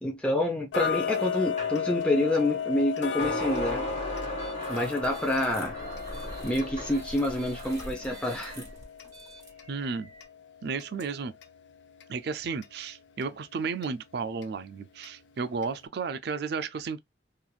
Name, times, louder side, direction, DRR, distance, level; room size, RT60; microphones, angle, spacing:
voice 1, 0.0-3.8 4.7-5.7 6.4-8.6, left 1 dB, 5° left, 0.6 m, -28 dB
Tick-tock, 0.7-11.6 12.0-12.1 12.6-12.7 13.2-13.3 13.8-13.9 14.4-14.5 15.0-15.1 15.6-15.7, left 7 dB, 75° left, 0.5 m, -35 dB
sound 1, 1.6-1.8 3.2-7.0, right 1 dB, 40° left, 1.2 m, -36 dB
sound 2, 4.3-10.2, right 1 dB, 20° right, 1.3 m, -44 dB
voice 2, 9.7-10.1 10.6-11.3 12.1-17.0, right 5 dB, 60° right, 0.4 m, -33 dB
2.9 x 2.4 x 2.3 m
head